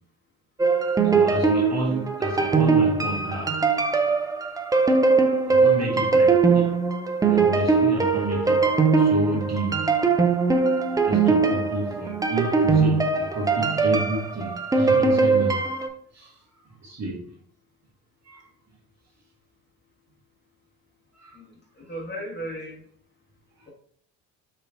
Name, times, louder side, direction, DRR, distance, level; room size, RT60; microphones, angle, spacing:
sound 1, 0.6-15.9, right 4 dB, 10° right, 0.4 m, -21 dB
voice 1, 1.0-3.6 5.5-6.7 7.2-9.9 10.5-10.7 11.0-15.6 16.1-16.4 16.8-17.2 18.2-18.5 21.2-21.4 23.6-23.7, right 2 dB, 35° right, 1.6 m, -30 dB
voice 2, 21.8-22.8, equal, 20° left, 1.4 m, -35 dB
4.7 x 2.9 x 2.5 m
hypercardioid pair, 55°, 46 cm